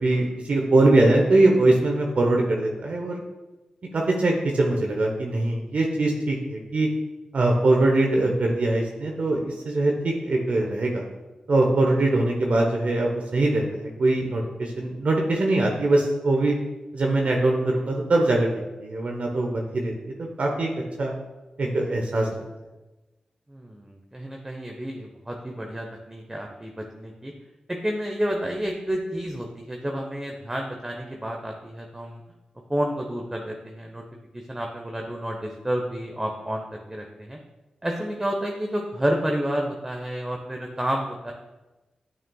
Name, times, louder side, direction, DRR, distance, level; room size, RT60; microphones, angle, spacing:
voice 1, 0.0-3.2 3.9-6.9 7.3-11.0 11.5-16.5 16.9-18.5 18.8-19.9 20.2-20.7 21.0-21.1 21.6-22.3, right 2 dB, 60° right, 0 dB, 1.0 m, -22 dB
voice 2, 23.5-27.3 27.7-32.2 32.7-34.0 34.3-37.4 37.8-41.3, equal, 15° right, 2 dB, 0.9 m, -30 dB
9.1 x 6.4 x 2.3 m, 1.1 s
cardioid pair, 45°, 3 cm